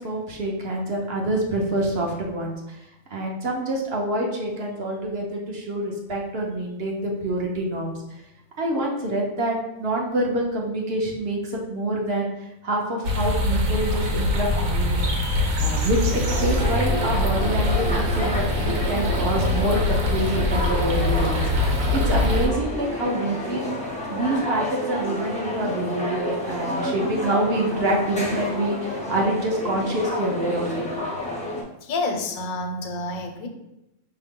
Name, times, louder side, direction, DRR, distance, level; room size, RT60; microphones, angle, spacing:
voice 1, 0.0-2.8 3.1-8.0 8.6-15.0 15.6-21.4 21.9-23.7 24.1-30.9, right 1 dB, 55° right, -1 dB, 0.9 m, -26 dB
sound 1, 13.0-22.5, left 1 dB, 85° right, 1.2 m, -23 dB
sound 2, 16.3-31.6, left 1 dB, 10° left, 0.5 m, -30 dB
voice 2, 31.8-33.5, left 2 dB, 85° left, 5 dB, 1.1 m, -28 dB
4.8 x 2.8 x 3.6 m, 0.90 s
omnidirectional pair, 1.4 m